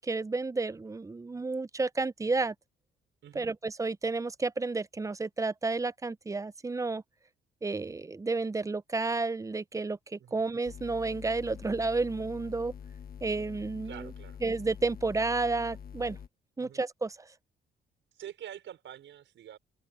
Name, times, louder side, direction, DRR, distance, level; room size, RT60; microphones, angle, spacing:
voice 1, 0.0-2.5 3.4-7.0 7.6-12.7 13.2-14.1 14.4-16.2 16.6-17.2, right 3 dB, 15° right, 0.6 m, -31 dB
voice 2, 3.2-3.5 10.2-10.4 13.8-14.4 16.6-16.8 18.1-19.6, right 10 dB, 70° right, 5.8 m, -46 dB
sound 1, 10.7-16.3, left 7 dB, 50° left, 1.2 m, -45 dB
cardioid pair, 90°, 20 cm